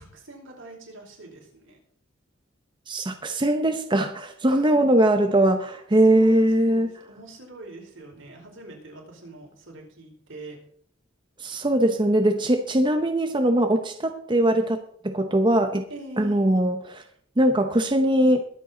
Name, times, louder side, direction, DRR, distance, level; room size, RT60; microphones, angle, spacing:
voice 1, 0.0-1.8 4.5-4.9 6.1-10.6 15.9-16.6, right 2 dB, 80° right, 0 dB, 4.8 m, -43 dB
voice 2, 2.9-6.9 11.4-14.8 15.0-15.8 16.2-16.8 17.4-18.4, right 1 dB, 25° right, 6 dB, 0.9 m, -21 dB
22.0 x 7.8 x 3.9 m, 0.62 s
head